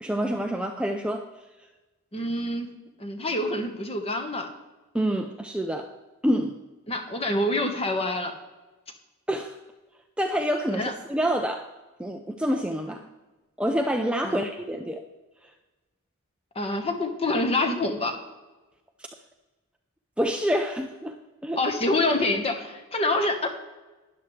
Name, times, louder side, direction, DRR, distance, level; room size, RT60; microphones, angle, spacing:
voice 1, 0.0-1.3 4.9-5.9 6.2-6.6 9.3-9.6 10.2-11.7 12.0-13.0 13.6-15.0 20.2-21.2 21.4-21.6, equal, 5° right, 4 dB, 0.4 m, -27 dB
voice 2, 2.1-2.7 3.0-4.5 6.9-8.3 10.8-10.9 14.2-14.5 16.5-18.1 21.6-23.5, left 2 dB, 25° left, 4 dB, 1.2 m, -26 dB
12.5 x 9.9 x 3.2 m, 1.2 s
head